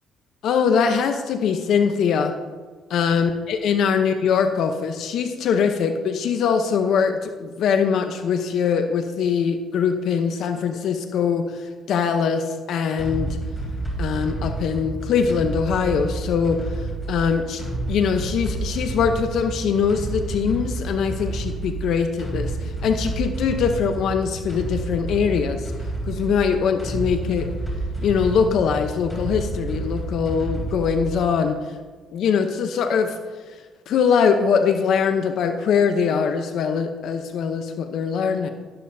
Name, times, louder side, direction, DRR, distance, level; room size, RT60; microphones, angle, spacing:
voice 1, 0.4-2.3 2.9-13.4 14.0-16.6 17.1-17.6 17.9-25.7 26.1-27.5 28.0-31.6 32.1-33.2 33.9-38.5, left 6 dB, 70° left, 7 dB, 0.8 m, -22 dB
sound 1, 13.0-31.4, right 2 dB, 5° left, 3.4 m, -30 dB
13.0 x 11.0 x 2.7 m, 1.4 s
cardioid pair, 90°, 0 cm